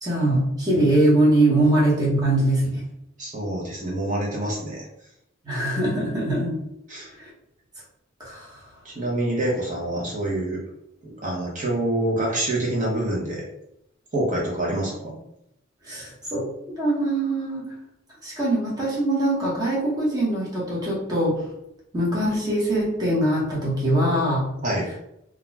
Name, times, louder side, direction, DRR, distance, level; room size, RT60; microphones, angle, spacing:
voice 1, 0.0-2.8 5.4-6.7 7.2-7.3 8.2-8.6 15.9-16.5 16.8-17.7 18.2-21.4 21.9-24.5, right 1 dB, 20° right, -6 dB, 1.0 m, -22 dB
voice 2, 3.2-4.9 6.9-7.1 8.8-10.6 11.0-13.5 14.1-15.2 24.6-24.9, right 1 dB, 40° right, -4 dB, 0.7 m, -26 dB
2.4 x 2.3 x 3.1 m, 0.80 s
head